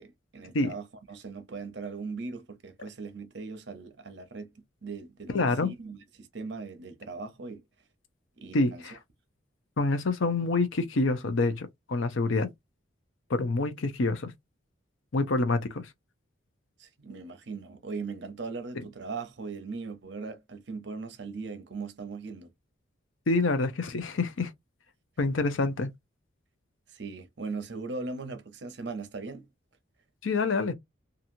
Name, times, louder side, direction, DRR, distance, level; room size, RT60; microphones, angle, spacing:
voice 1, 0.0-4.5 4.8-5.4 5.6-7.6 8.4-8.8 16.8-22.5 26.9-29.5, right 4 dB, 60° right, 0.7 m, -39 dB
voice 2, 5.3-5.7 8.5-9.0 9.8-12.5 13.3-14.3 15.1-15.8 18.8-18.9 23.3-24.5 25.2-25.9 30.2-30.7, left 3 dB, 80° left, 0.6 m, -27 dB
2.9 x 2.6 x 2.6 m
head